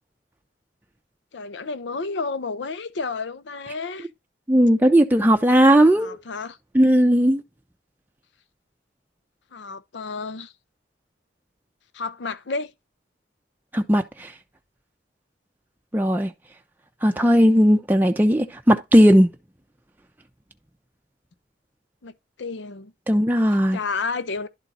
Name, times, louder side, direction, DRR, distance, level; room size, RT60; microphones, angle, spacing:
voice 1, 1.3-4.1 5.9-6.6 9.5-10.5 11.9-12.7 22.0-22.1 22.4-22.9 23.5-24.5, left 4 dB, 70° left, 0.6 m, -31 dB
voice 2, 4.5-6.2 6.7-7.4 13.7-14.3 15.9-16.3 17.0-19.3 23.1-23.8, equal, 10° right, 0.5 m, -17 dB
11.5 x 3.9 x 4.1 m
head